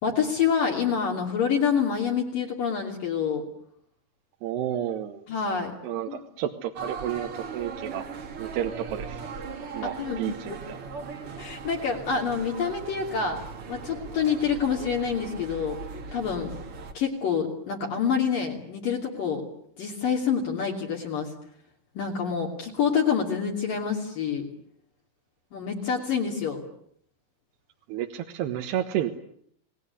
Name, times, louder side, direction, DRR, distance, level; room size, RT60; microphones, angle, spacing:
voice 1, 0.0-3.5 5.3-5.7 6.1-6.2 10.0-10.3 11.4-13.4 13.7-15.8 16.1-16.5 16.9-19.4 19.8-21.3 22.0-24.4 25.5-26.6, left 6 dB, 50° left, -1 dB, 4.1 m, -27 dB
voice 2, 4.4-5.2 5.8-8.1 8.4-9.2 9.7-10.6 27.9-29.1, right 11 dB, 70° right, 5 dB, 3.1 m, -31 dB
sound 1, 6.8-16.9, right 5 dB, 40° right, 2.2 m, -38 dB
29.0 x 20.0 x 9.7 m, 0.68 s
omnidirectional pair, 5.5 m